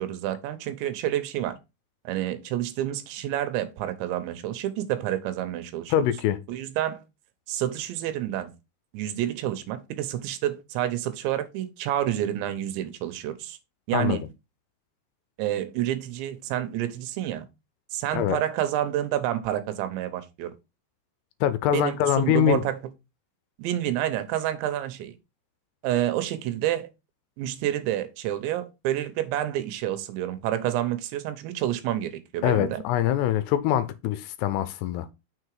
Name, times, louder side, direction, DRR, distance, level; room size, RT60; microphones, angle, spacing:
voice 1, 0.0-1.6 2.0-5.9 6.5-7.0 7.5-8.5 8.9-13.6 13.9-14.2 15.4-17.5 17.9-20.5 21.7-22.8 23.6-25.1 25.8-26.9 27.4-32.8, right 12 dB, 90° right, 3.2 m, -29 dB
voice 2, 5.9-6.4 13.9-14.2 18.1-18.4 21.4-22.6 32.4-35.1, left 11 dB, 80° left, 2.5 m, -24 dB
6.3 x 4.8 x 4.7 m
omnidirectional pair, 5.1 m